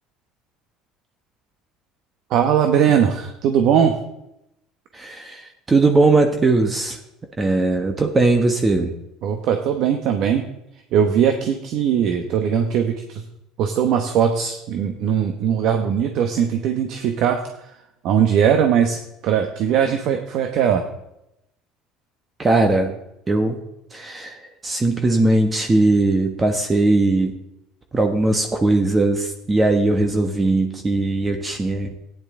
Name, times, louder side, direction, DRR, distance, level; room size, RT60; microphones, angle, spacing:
voice 1, 2.3-4.0 9.2-10.4 10.9-13.2 13.6-17.7 18.0-20.8, right 8 dB, 60° right, 5 dB, 1.1 m, -20 dB
voice 2, 4.9-7.0 7.4-8.9 22.4-23.0 23.3-23.6 23.9-27.3 27.9-31.9, right 2 dB, 20° right, 5 dB, 1.1 m, -19 dB
13.5 x 10.0 x 3.7 m, 0.86 s
supercardioid pair, 110°, 0 cm